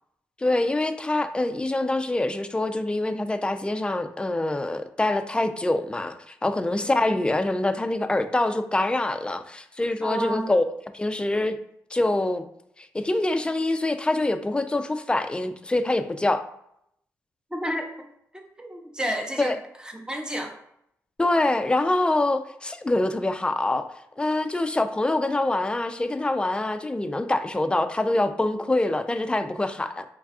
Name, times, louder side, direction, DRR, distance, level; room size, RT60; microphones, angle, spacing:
voice 1, 0.4-10.6 10.9-11.6 11.9-12.4 12.8-16.4 19.4-19.6 21.2-23.9 24.2-30.0, left 2 dB, 15° left, 9 dB, 0.3 m, -25 dB
voice 2, 6.8-7.2 10.0-10.5 17.5-18.1 18.3-20.6, equal, 15° right, 3 dB, 0.7 m, -31 dB
3.2 x 2.3 x 3.6 m, 0.74 s
supercardioid pair, 55°, 6 cm